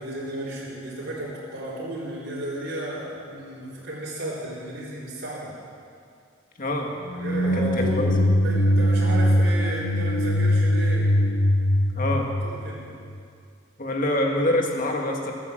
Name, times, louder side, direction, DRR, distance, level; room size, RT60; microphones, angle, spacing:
voice 1, 0.0-5.5 7.1-8.1 8.4-11.1 12.0-12.2 12.4-12.9, right 1 dB, 55° right, -10 dB, 3.8 m, -33 dB
voice 2, 6.6-6.9 7.5-8.1 12.0-12.3 13.8-15.3, left 1 dB, 45° left, 1 dB, 1.8 m, -25 dB
sound 1, 7.1-13.1, equal, 65° left, 1.0 m, -21 dB
20.5 x 8.6 x 7.8 m, 2.4 s
head